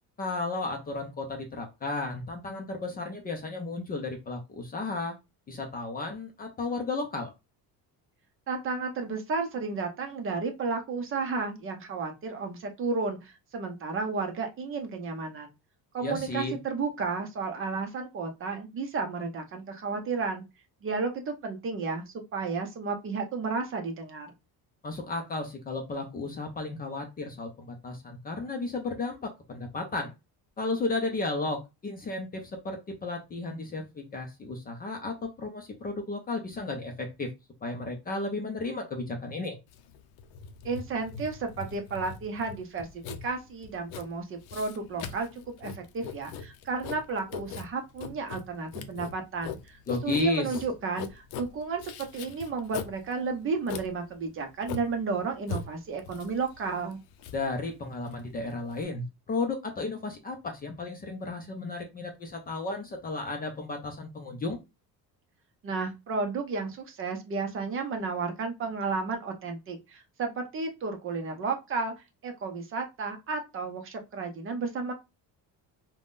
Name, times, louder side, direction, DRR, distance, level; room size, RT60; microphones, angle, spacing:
voice 1, 0.2-5.2 5.5-7.3 16.0-16.6 24.8-30.1 30.6-37.3 37.6-39.6 49.9-50.6 57.3-64.6, left 3 dB, 25° left, 3 dB, 0.5 m, -34 dB
voice 2, 8.5-15.5 15.9-20.4 20.8-24.3 40.6-42.9 43.2-57.0 65.6-71.9 72.2-74.9, right 4 dB, 35° right, 5 dB, 0.6 m, -32 dB
Writing, 39.7-58.8, left 6 dB, 70° left, 0.6 m, -41 dB
3.5 x 2.2 x 2.4 m, 0.24 s
cardioid pair, 165°, 38 cm